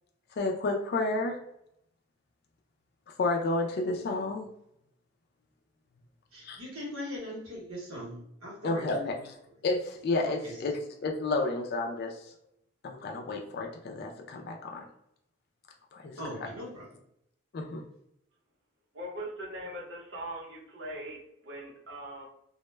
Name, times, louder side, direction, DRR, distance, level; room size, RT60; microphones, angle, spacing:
voice 1, 0.4-1.4 3.2-4.5 6.4-6.6 8.6-9.3 9.6-12.3 12.8-14.9 15.9-16.1 17.5-17.8, left 2 dB, 50° left, 1 dB, 0.3 m, -31 dB
voice 2, 6.3-9.3 10.4-10.5 16.2-16.9, left 1 dB, 85° right, -3 dB, 0.8 m, -40 dB
voice 3, 18.9-22.3, right 1 dB, 55° right, -3 dB, 0.8 m, -41 dB
2.1 x 2.0 x 3.1 m, 0.76 s
head